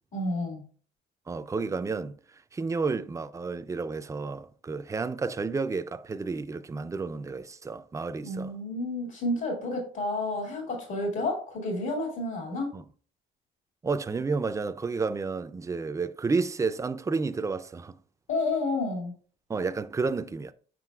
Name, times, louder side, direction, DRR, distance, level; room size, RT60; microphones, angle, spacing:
voice 1, 0.1-0.7 8.2-12.7 18.3-19.1, left 2 dB, 80° left, 2.2 m, -30 dB
voice 2, 1.3-2.2 2.5-8.5 12.7-12.8 13.8-18.0 19.5-20.5, right 4 dB, 15° right, 0.3 m, -31 dB
7.5 x 5.6 x 2.3 m
cardioid pair, 90°, 20 cm